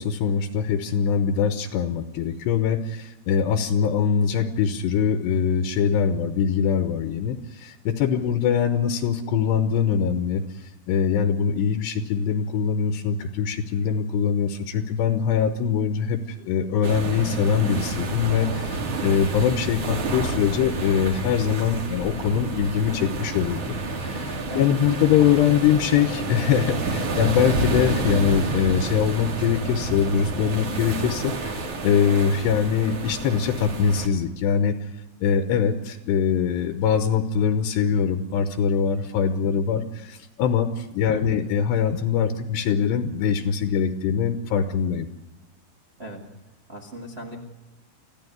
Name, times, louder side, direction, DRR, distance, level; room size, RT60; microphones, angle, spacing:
voice 1, 0.0-34.8 35.2-45.1, left 7 dB, 75° left, 8 dB, 3.0 m, -23 dB
sound 1, 16.8-34.1, right 2 dB, 40° right, 2.6 m, -29 dB
voice 2, 46.7-47.4, right 1 dB, 75° right, 0 dB, 0.5 m, -37 dB
26.0 x 15.5 x 9.4 m, 0.95 s
omnidirectional pair, 5.2 m